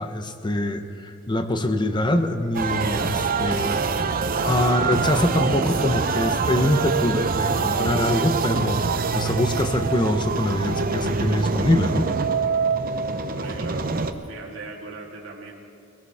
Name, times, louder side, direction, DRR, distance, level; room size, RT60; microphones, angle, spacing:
voice 1, 0.0-4.1 4.4-8.8 9.1-12.1, left 1 dB, 20° left, 7 dB, 0.9 m, -24 dB
sound 1, 2.5-14.1, right 4 dB, 45° right, 0.7 m, -24 dB
voice 2, 13.2-15.5, right 3 dB, 65° right, -1 dB, 2.0 m, -39 dB
22.0 x 17.5 x 3.6 m, 2.3 s
head